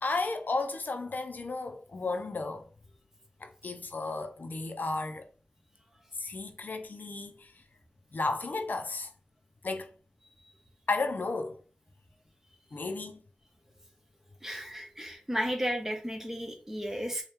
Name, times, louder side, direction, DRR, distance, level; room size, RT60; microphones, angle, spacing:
voice 1, 0.0-2.7 3.4-5.3 6.2-7.5 8.1-9.1 9.6-9.9 10.9-11.6 12.7-13.2, left 3 dB, 85° left, 0.4 m, -33 dB
voice 2, 14.4-17.2, equal, 15° right, 0.9 m, -33 dB
4.3 x 2.2 x 3.4 m
wide cardioid pair, 50°, 3 cm